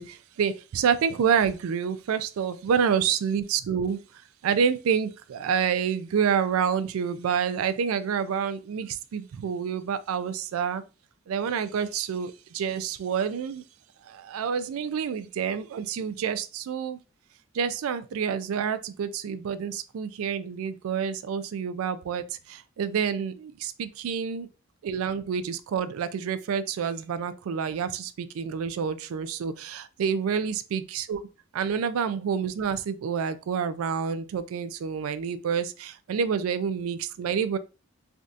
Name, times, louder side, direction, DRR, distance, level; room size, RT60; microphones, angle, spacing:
voice 1, 0.0-4.0 4.4-10.8 11.3-13.6 14.1-17.0 17.5-22.2 22.5-24.5 24.8-31.2 31.5-37.6, right 7 dB, 90° right, 0.3 m, -28 dB
3.4 x 2.4 x 2.6 m
head